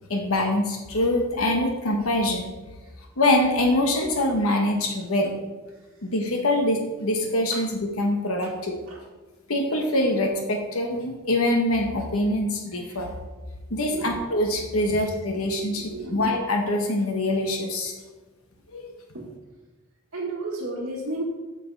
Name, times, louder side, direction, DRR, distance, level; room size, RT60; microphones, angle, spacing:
voice 1, 0.1-2.5 3.2-5.3 6.0-8.8 9.5-13.1 13.7-17.9 18.7-18.9, left 1 dB, 70° left, 2 dB, 1.1 m, -24 dB
voice 2, 13.7-14.1 14.9-15.0 15.3-15.5 15.8-16.2 19.1-19.3 20.1-21.2, right 2 dB, 60° right, -6 dB, 1.4 m, -34 dB
7.9 x 6.0 x 4.6 m, 1.2 s
head